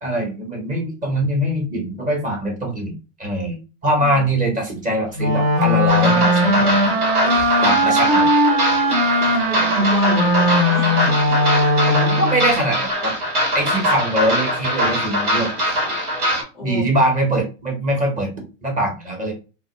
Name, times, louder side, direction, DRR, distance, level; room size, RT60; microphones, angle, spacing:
voice 1, 0.0-2.9 3.2-3.6 3.8-6.9 7.6-8.3 11.8-13.1 13.5-15.5 16.6-18.3 18.6-19.3, right 1 dB, 20° right, 1 dB, 0.9 m, -22 dB
voice 2, 3.9-4.6 7.2-7.5 9.5-11.2 16.5-16.9, left 2 dB, ahead, -4 dB, 0.4 m, -33 dB
Wind instrument woodwind instrument, 5.2-12.6, equal, 50° right, 1.0 m, -18 dB
sound 1, 5.9-16.4, equal, 90° right, 1.3 m, -22 dB
2.3 x 2.1 x 3.0 m, 0.31 s
supercardioid pair, 125°, 44 cm